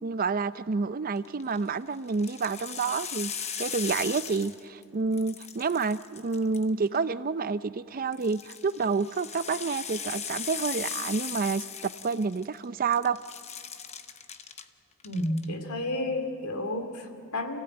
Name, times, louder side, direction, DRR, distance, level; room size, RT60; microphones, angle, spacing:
voice 1, 0.0-13.2, right 4 dB, 40° right, 14 dB, 0.5 m, -29 dB
sound 1, 1.2-1.6 2.1-4.8 5.1-7.0 8.1-12.6 12.9-14.6 15.0-15.4, left 7 dB, 30° left, 0.9 m, -38 dB
voice 2, 15.0-17.6, left 1 dB, 75° left, 6 dB, 2.5 m, -31 dB
29.0 x 16.5 x 8.9 m, 2.6 s
head